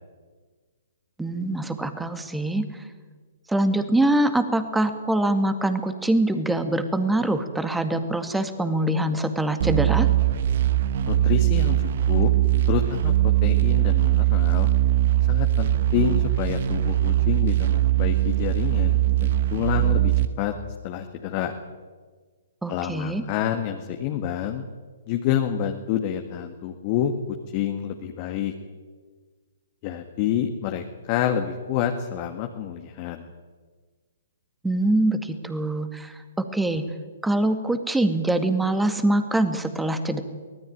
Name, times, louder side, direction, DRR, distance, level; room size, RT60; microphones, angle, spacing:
voice 1, 1.2-2.8 3.5-10.1 22.6-23.2 34.6-36.9 37.2-40.2, right 1 dB, 5° right, 8 dB, 2.1 m, -24 dB
sound 1, 9.6-20.3, right 13 dB, 50° right, 1.5 m, -21 dB
voice 2, 11.1-12.3 12.7-14.7 15.2-20.1 20.4-20.5 20.8-21.5 22.7-24.6 25.1-27.1 27.5-28.5 29.8-33.3, left 10 dB, 35° left, 4 dB, 1.9 m, -28 dB
24.0 x 18.5 x 9.4 m, 1.5 s
figure-of-eight pair, 125°, 0 cm